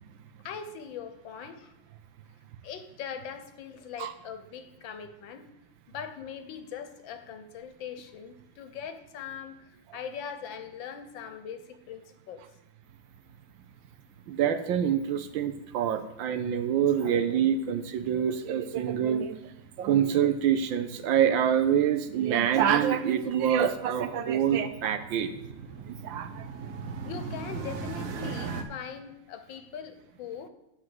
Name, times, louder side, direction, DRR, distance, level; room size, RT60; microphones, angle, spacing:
voice 1, 0.4-1.7 2.6-5.4 5.9-9.6 9.9-12.4 27.0-30.5, left 7 dB, 70° left, 9 dB, 1.5 m, -41 dB
sound 1, 12.8-28.6, right 5 dB, 55° right, 1.0 m, -42 dB
voice 2, 14.3-19.4 19.8-25.3 25.9-26.4, right 9 dB, 70° right, 10 dB, 1.4 m, -26 dB
9.8 x 4.7 x 7.8 m, 0.87 s
omnidirectional pair, 2.3 m